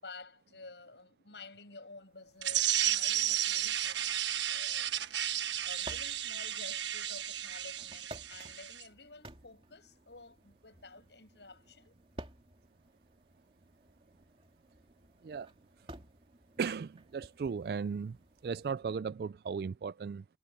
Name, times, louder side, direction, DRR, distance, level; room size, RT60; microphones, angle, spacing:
voice 1, 0.0-5.2 5.6-12.0, left 3 dB, 80° left, 6.2 m, -52 dB
sound 1, 2.2-18.7, right 1 dB, 30° right, 3.0 m, -55 dB
sound 2, 2.4-8.8, right 11 dB, 90° right, 1.3 m, -33 dB
voice 2, 16.6-18.2 18.4-20.2, right 5 dB, 55° right, 0.3 m, -36 dB
head